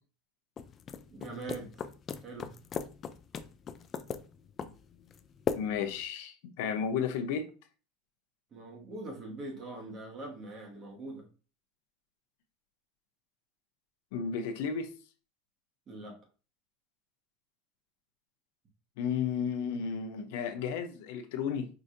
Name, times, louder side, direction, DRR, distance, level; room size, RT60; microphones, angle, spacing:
sound 1, 0.6-6.0, left 7 dB, 30° left, 0.3 m, -39 dB
voice 1, 1.1-1.7 2.2-2.5 8.5-11.3 15.9-16.2, right 2 dB, 30° right, 1.2 m, -42 dB
voice 2, 5.5-7.5 14.1-14.9 19.0-21.7, left 7 dB, 75° left, 0.6 m, -33 dB
4.7 x 2.5 x 2.5 m
supercardioid pair, 130°, 0 cm